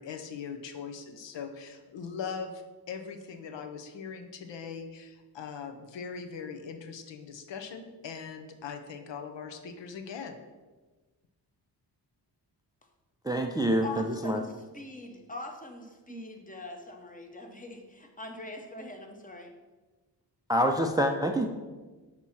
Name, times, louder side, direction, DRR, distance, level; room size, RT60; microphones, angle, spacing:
voice 1, 0.0-2.6 2.9-10.4, left 6 dB, 80° left, 5 dB, 0.7 m, -40 dB
voice 2, 13.2-14.4 16.1-16.3 20.5-21.5, equal, 10° right, 4 dB, 0.4 m, -27 dB
voice 3, 13.8-19.5, left 2 dB, 20° left, 3 dB, 0.9 m, -43 dB
6.1 x 2.9 x 5.5 m, 1.3 s
cardioid pair, 75°, 43 cm